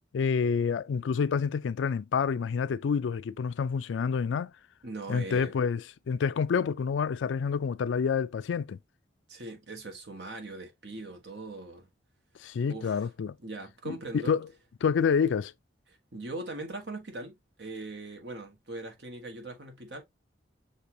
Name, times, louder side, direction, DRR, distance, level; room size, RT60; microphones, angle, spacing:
voice 1, 0.1-4.5 5.1-8.8 12.4-13.4 13.9-14.5 14.8-15.5, left 6 dB, 75° left, 0.4 m, -28 dB
voice 2, 4.8-5.6 9.3-11.9 12.7-13.1 13.4-14.3 15.9-20.0, right 2 dB, 60° right, 1.4 m, -40 dB
6.6 x 2.7 x 2.7 m
head